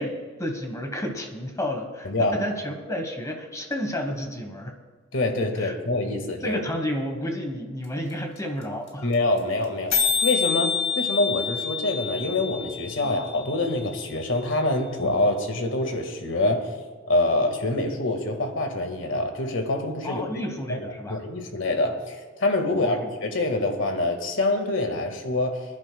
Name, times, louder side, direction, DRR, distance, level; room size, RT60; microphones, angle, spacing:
voice 1, 0.0-4.8 5.6-5.7 6.4-9.1 13.0-13.1 20.0-21.2 22.7-23.1, equal, 15° left, 3 dB, 1.3 m, -31 dB
voice 2, 2.0-2.5 5.1-6.6 9.0-10.0 10.2-16.7 17.1-20.2 20.7-25.6, left 2 dB, 70° left, 4 dB, 1.8 m, -25 dB
sound 1, 7.8-7.9 8.1-8.2 8.4-8.6 8.9-9.0 9.1-9.4 9.6-9.7 9.9-13.9, left 6 dB, 90° left, 2.8 m, -27 dB
26.5 x 11.0 x 2.3 m, 1.5 s
head